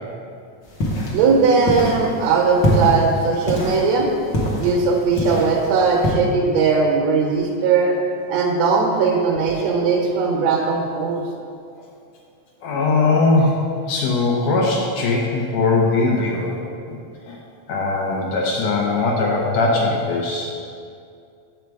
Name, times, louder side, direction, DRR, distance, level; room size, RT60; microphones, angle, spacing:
sound 1, 0.7-6.1, left 1 dB, 55° left, 1.3 m, -24 dB
voice 1, 1.1-4.1 4.6-8.0 8.3-11.2, right 4 dB, 70° right, -1 dB, 1.8 m, -19 dB
voice 2, 12.6-16.6 16.9-17.0 17.3-17.4 17.7-20.5, left 3 dB, 70° left, -2 dB, 1.9 m, -20 dB
7.3 x 5.1 x 4.6 m, 2.4 s
omnidirectional pair, 3.4 m